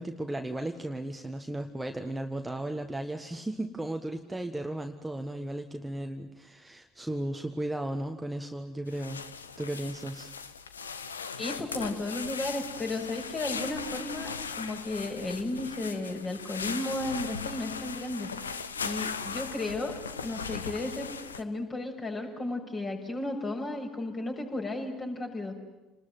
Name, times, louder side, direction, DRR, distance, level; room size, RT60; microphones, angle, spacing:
voice 1, 0.0-9.2 9.6-10.3, right 1 dB, 10° right, 5 dB, 1.6 m, -35 dB
sound 1, 8.9-21.4, left 5 dB, 85° left, 1.0 m, -38 dB
voice 2, 11.4-18.3 18.7-21.1 21.3-25.5, left 2 dB, 30° left, 2 dB, 6.7 m, -34 dB
29.0 x 20.5 x 9.4 m, 1.0 s
figure-of-eight pair, 65°, 0 cm